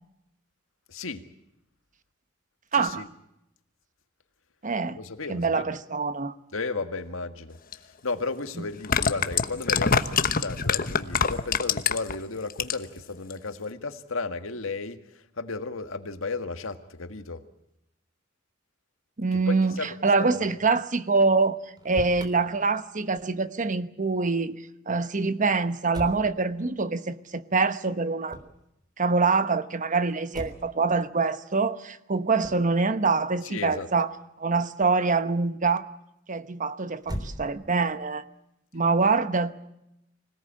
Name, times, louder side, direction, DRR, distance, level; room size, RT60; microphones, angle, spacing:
voice 1, 0.9-1.2 2.7-3.1 5.0-5.7 6.5-7.6 8.0-17.4 19.3-19.9 20.2-20.4 33.4-33.9, left 3 dB, 85° left, 1.8 m, -34 dB
voice 2, 2.7-3.0 4.6-5.0 5.3-6.3 19.2-28.4 29.0-34.1 34.4-35.8 36.3-38.2 38.7-39.5, right 4 dB, 40° right, 1.1 m, -25 dB
sound 1, 7.7-7.8 8.7-12.1 12.5-13.0 13.3-13.4, left 6 dB, 45° left, 1.1 m, -24 dB
Motor vehicle (road), 21.6-22.3 25.9-26.3 28.2-28.6 30.3-30.8 32.4-32.7 37.0-37.8, equal, 20° right, 3.6 m, -37 dB
25.5 x 17.5 x 8.8 m
head